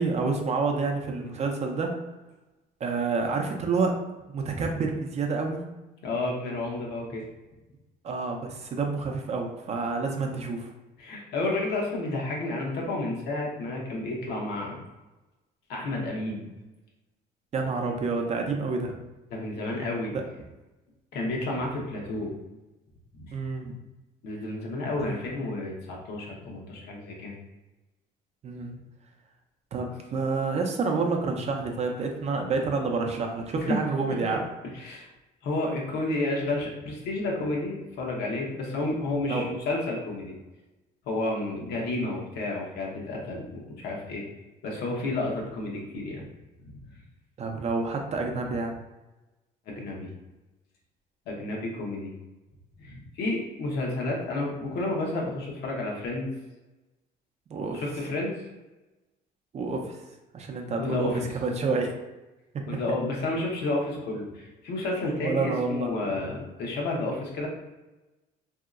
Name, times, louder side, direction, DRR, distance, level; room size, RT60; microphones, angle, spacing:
voice 1, 0.0-1.9 2.8-4.0 4.3-5.6 8.0-10.7 17.5-19.0 20.1-20.2 23.3-23.7 25.0-25.1 28.4-28.8 29.7-34.4 39.3-39.5 47.4-48.8 57.5-57.8 59.5-60.0 60.3-61.9 65.2-66.2, right 4 dB, 40° right, 3 dB, 0.5 m, -28 dB
voice 2, 6.0-7.2 11.0-14.8 15.7-16.5 19.3-20.1 21.1-22.3 23.2-23.3 24.2-27.4 33.6-33.8 34.7-35.1 35.4-40.3 41.1-44.2 44.6-46.3 49.7-50.1 51.3-52.1 52.8-56.3 57.7-58.3 60.8-61.2 62.7-67.5, left 2 dB, 75° left, -1 dB, 0.9 m, -31 dB
3.0 x 2.7 x 2.4 m, 1.1 s
cardioid pair, 110°, 17 cm